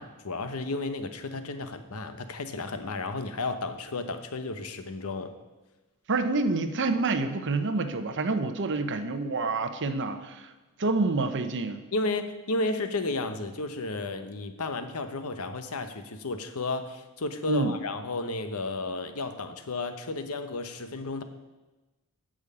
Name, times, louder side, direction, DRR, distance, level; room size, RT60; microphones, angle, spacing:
voice 1, 0.0-5.3 11.9-21.2, left 2 dB, 80° left, 9 dB, 1.0 m, -33 dB
voice 2, 6.1-10.5 10.8-11.8 17.5-17.7, right 3 dB, 55° right, 9 dB, 0.8 m, -27 dB
8.9 x 6.4 x 8.5 m, 1.1 s
head